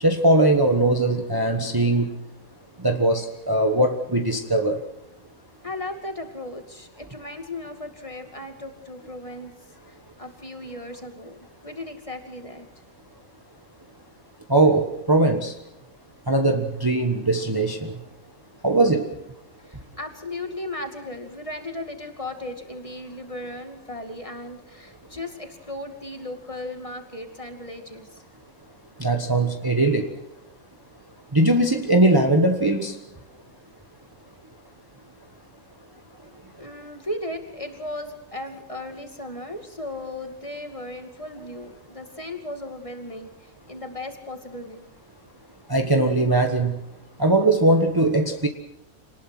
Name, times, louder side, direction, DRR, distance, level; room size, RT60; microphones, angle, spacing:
voice 1, 0.0-2.1 2.8-4.8 14.5-15.5 16.3-17.9 18.6-19.0 29.0-30.1 31.3-32.9 45.7-46.7 47.2-48.5, right 2 dB, 15° right, 4 dB, 1.3 m, -20 dB
voice 2, 5.6-9.5 9.9-12.7 19.6-28.2 36.6-44.9, left 1 dB, 25° left, 5 dB, 2.4 m, -36 dB
26.5 x 19.5 x 6.1 m, 0.86 s
omnidirectional pair, 1.4 m